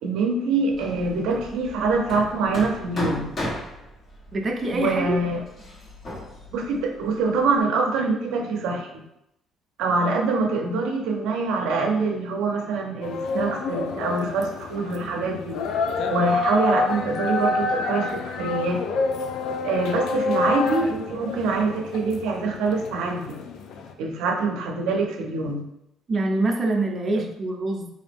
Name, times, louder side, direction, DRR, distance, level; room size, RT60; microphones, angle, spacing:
voice 1, 0.0-3.3 4.7-5.4 6.5-9.0 9.8-15.6 16.1-18.8 19.6-23.4 24.0-25.7 27.1-27.3, right 3 dB, 85° right, 2 dB, 0.5 m, -25 dB
Hammer, 0.7-7.6, left 1 dB, 45° left, 1.3 m, -36 dB
voice 2, 4.3-5.2 26.1-27.9, right 2 dB, 35° right, 2 dB, 0.5 m, -25 dB
sound 1, 13.0-23.9, left 4 dB, 75° left, 0.4 m, -28 dB
3.8 x 2.6 x 3.4 m, 0.82 s
cardioid pair, 100°, 0 cm